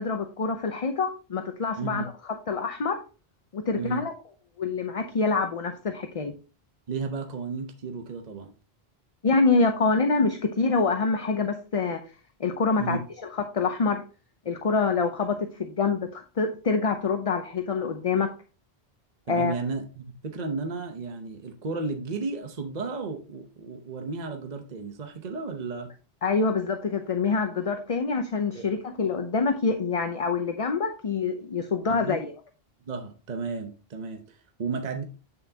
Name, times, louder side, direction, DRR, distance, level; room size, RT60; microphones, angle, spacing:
voice 1, 0.0-3.0 3.5-4.1 4.6-6.3 9.2-12.0 12.4-13.0 13.3-14.0 14.5-18.3 19.3-19.5 26.2-32.2, left 4 dB, 40° left, 0.6 m, -26 dB
voice 2, 6.9-8.5 12.8-13.0 19.3-25.9 28.5-28.6 31.9-32.3 32.9-35.0, right 4 dB, 45° right, 1.0 m, -33 dB
8.4 x 6.8 x 2.8 m
omnidirectional pair, 1.1 m